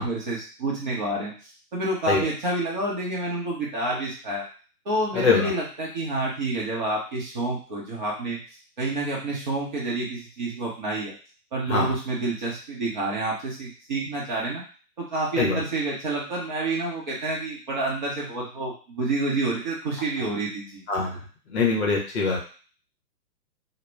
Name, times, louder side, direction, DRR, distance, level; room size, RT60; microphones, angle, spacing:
voice 1, 0.0-1.3 1.7-4.4 4.9-8.4 8.8-11.1 11.5-14.6 15.0-20.8, right 2 dB, 30° right, -4 dB, 0.6 m, -28 dB
voice 2, 5.1-5.5 11.7-11.9 15.4-15.6 20.9-21.2 21.5-22.4, left 4 dB, 40° left, -1 dB, 0.7 m, -23 dB
2.2 x 2.1 x 3.3 m, 0.39 s
figure-of-eight pair, 125°, 49 cm